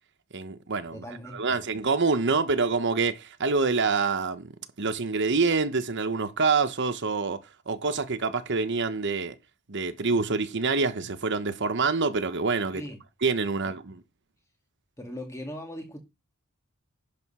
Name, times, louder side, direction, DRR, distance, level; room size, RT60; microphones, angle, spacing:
voice 1, 0.3-1.0 1.3-4.5 4.8-7.4 7.7-9.3 9.7-12.8 13.2-14.0, right 4 dB, 55° right, 1.0 m, -26 dB
voice 2, 0.9-1.6 12.7-13.0 13.6-13.7 15.0-16.0, left 1 dB, 15° left, 1.9 m, -39 dB
11.0 x 5.2 x 5.6 m
head